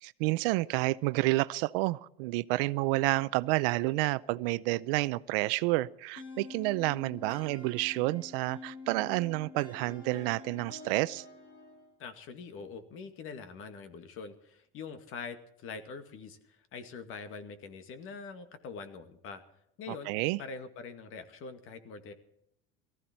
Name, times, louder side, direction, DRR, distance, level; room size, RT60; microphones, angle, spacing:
voice 1, 0.0-11.2 19.9-20.4, right 20 dB, 70° right, 0.6 m, -30 dB
sound 1, 6.2-11.9, left 3 dB, 60° left, 5.8 m, -47 dB
voice 2, 12.0-19.4 19.8-20.1 20.4-22.1, left 5 dB, 45° left, 2.1 m, -44 dB
18.5 x 14.5 x 4.4 m
supercardioid pair, 125°, 29 cm